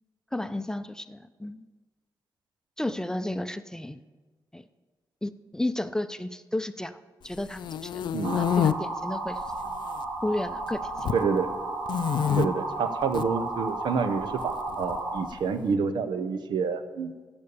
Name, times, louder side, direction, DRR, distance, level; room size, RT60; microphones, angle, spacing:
voice 1, 0.3-1.7 2.8-4.0 4.5-4.6 5.2-7.0 7.2-8.0 8.3-9.4 10.2-10.8 12.3-12.4, left 1 dB, 10° left, 11 dB, 0.5 m, -32 dB
sound 1, 7.3-8.7 9.4-10.0 10.3-11.2 11.9-12.5 13.0-13.3 14.4-15.3, left 9 dB, 80° left, 0.4 m, -27 dB
sound 2, 8.2-15.2, right 2 dB, 50° right, 2.2 m, -33 dB
voice 2, 11.1-11.5 12.4-17.3, right 5 dB, 90° right, 10 dB, 0.7 m, -28 dB
13.5 x 5.3 x 7.0 m, 1.3 s
cardioid pair, 80°, 8 cm